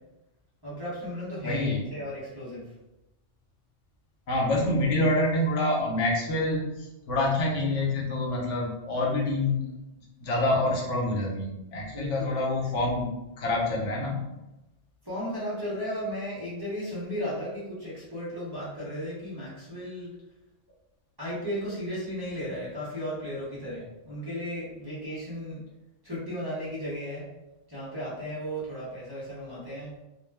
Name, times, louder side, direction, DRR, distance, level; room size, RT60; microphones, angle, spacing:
voice 1, 0.6-2.7 11.9-12.4 15.0-20.1 21.2-25.6 26.0-27.3 27.7-30.0, equal, 25° right, -9 dB, 0.7 m, -35 dB
voice 2, 1.4-1.8 4.3-9.6 10.2-14.2, left 2 dB, 80° left, -2 dB, 1.1 m, -27 dB
2.3 x 2.3 x 3.3 m, 0.95 s
omnidirectional pair, 1.3 m